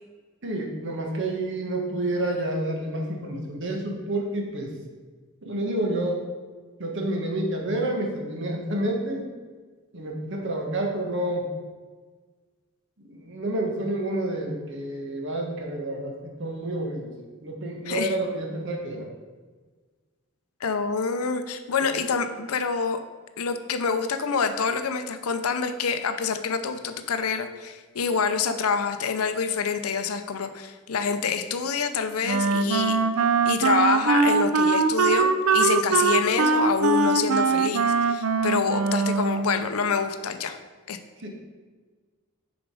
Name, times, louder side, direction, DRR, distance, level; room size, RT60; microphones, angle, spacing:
voice 1, 0.4-4.7 5.4-6.2 6.8-9.3 9.9-11.5 13.0-17.1 17.4-19.1 21.8-21.9 41.2-41.3, right 1 dB, 60° right, 1 dB, 1.4 m, -29 dB
voice 2, 20.6-23.0 23.4-33.0 33.4-40.6 40.9-41.0, left 5 dB, 85° left, 9 dB, 0.6 m, -26 dB
Wind instrument woodwind instrument, 32.2-39.6, right 4 dB, 75° right, 0.5 m, -22 dB
7.2 x 5.1 x 4.9 m, 1.4 s
head